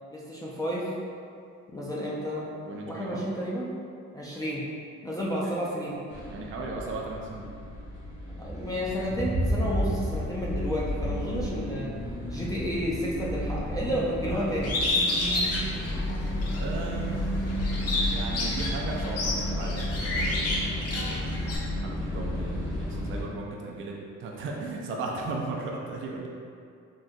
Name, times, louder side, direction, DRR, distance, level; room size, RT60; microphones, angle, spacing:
voice 1, 0.1-0.9 1.7-2.5 2.7-3.7 4.1-4.6 5.0-6.0 8.4-11.9 12.3-14.7, equal, 10° left, -6 dB, 0.4 m, -31 dB
voice 2, 2.7-3.2 5.4-5.6 6.3-7.5 14.3-14.5 16.6-17.2 18.1-21.1 21.8-23.9 24.2-26.3, right 3 dB, 45° right, -2 dB, 0.4 m, -36 dB
sound 1, 6.1-23.2, equal, 80° left, 1.2 m, -32 dB
Bird, 14.6-16.6 17.1-21.6, left 2 dB, 55° left, 0.7 m, -29 dB
3.7 x 2.0 x 2.6 m, 2.4 s
cardioid pair, 90°, 30 cm